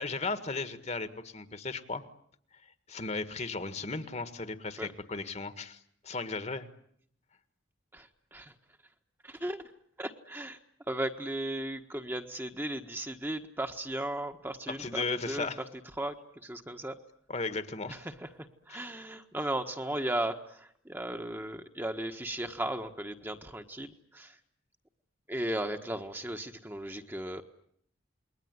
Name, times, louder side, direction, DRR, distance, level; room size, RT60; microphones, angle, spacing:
voice 1, 0.0-2.0 2.9-6.7 14.7-15.6 17.3-18.0 18.7-18.8, left 3 dB, 35° left, 10 dB, 1.7 m, -36 dB
voice 2, 7.9-8.5 9.2-9.6 10.0-10.6 10.9-15.5 16.0-17.0 17.8-24.4 25.3-27.4, right 1 dB, 10° right, 5 dB, 1.4 m, -36 dB
28.5 x 21.5 x 9.6 m, 0.68 s
head